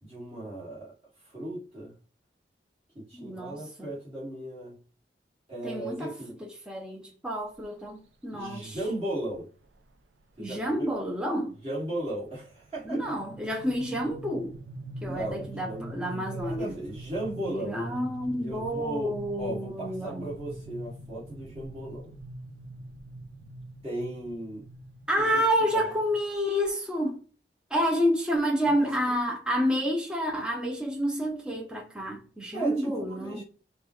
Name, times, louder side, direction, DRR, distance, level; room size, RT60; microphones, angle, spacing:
voice 1, 0.0-0.9 1.2-1.9 3.0-4.8 5.5-6.4 8.3-9.5 10.4-10.9 11.6-13.0 15.1-17.8 18.4-22.1 23.8-24.6 25.2-25.4 25.7-25.8 28.6-28.9 32.5-33.4, right 1 dB, 30° right, 1.9 m, -36 dB
voice 2, 3.1-3.9 5.6-8.8 10.4-11.6 12.8-14.6 15.0-16.7 17.4-20.4 25.1-27.2 27.7-33.4, equal, 5° right, 0.5 m, -29 dB
sound 1, 7.6-7.9 8.7-8.8 9.2-9.3 9.6-9.9 10.3-26.7, right 1 dB, 85° right, 0.5 m, -43 dB
5.1 x 2.3 x 3.0 m
head